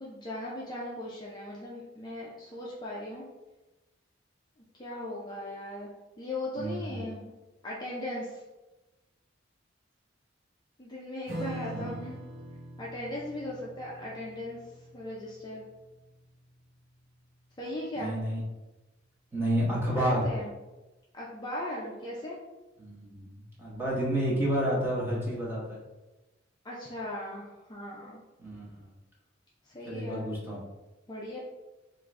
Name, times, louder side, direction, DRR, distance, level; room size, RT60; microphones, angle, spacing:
voice 1, 0.0-3.3 4.7-5.9 6.2-7.3 7.6-8.4 10.8-12.2 12.8-14.6 14.9-15.6 17.6-18.1 20.0-20.5 21.1-22.4 26.6-28.2 29.7-30.3 31.1-31.4, left 1 dB, 20° left, -5 dB, 0.5 m, -38 dB
voice 2, 6.6-7.0 11.7-11.9 18.0-18.4 19.3-20.3 22.8-23.3 23.6-25.8 28.4-28.9 29.9-30.6, equal, 10° right, -6 dB, 1.1 m, -30 dB
Strum, 11.3-18.1, right 2 dB, 85° right, 1.0 m, -44 dB
3.8 x 2.6 x 3.2 m, 1.1 s
head